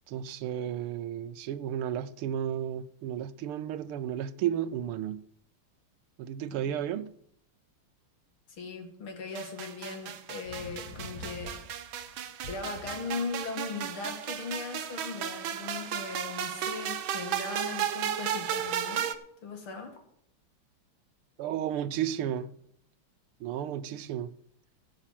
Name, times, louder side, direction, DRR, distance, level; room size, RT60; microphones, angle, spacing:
voice 1, 0.1-5.2 6.2-7.1 21.4-22.5 23.4-24.3, right 10 dB, 90° right, 1.7 m, -33 dB
voice 2, 6.5-6.8 8.6-11.6 12.5-19.1 19.4-20.0, left 4 dB, 75° left, 2.9 m, -39 dB
sound 1, 9.4-19.1, right 9 dB, 70° right, 1.7 m, -34 dB
sound 2, 10.4-13.4, left 1 dB, 25° left, 5.0 m, -45 dB
16.0 x 5.8 x 7.5 m
omnidirectional pair, 2.4 m